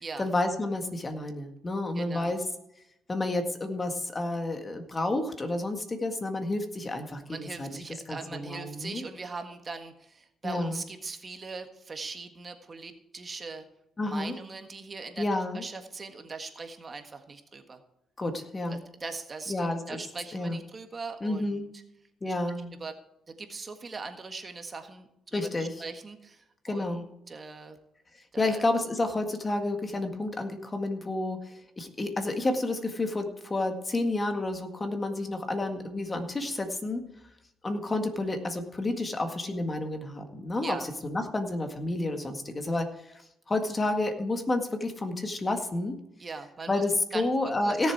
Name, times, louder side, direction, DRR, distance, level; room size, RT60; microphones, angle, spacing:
voice 1, 0.2-2.4 3.1-7.7 8.1-9.0 10.4-10.8 14.0-14.3 15.2-15.6 18.2-18.8 19.5-20.0 20.3-20.6 21.2-21.7 22.2-22.7 25.3-25.7 26.7-27.1 28.4-37.0 37.6-43.1 43.5-46.0 46.7-47.9, left 2 dB, 25° left, 5 dB, 1.8 m, -30 dB
voice 2, 1.9-2.3 7.3-13.7 14.0-17.8 18.7-21.6 22.3-22.4 22.6-22.9 23.3-27.8 28.3-28.6 40.6-40.9 46.2-46.8 47.1-47.8, right 4 dB, 35° right, 6 dB, 1.5 m, -41 dB
17.0 x 7.3 x 4.7 m, 0.82 s
cardioid pair, 90°, 0 cm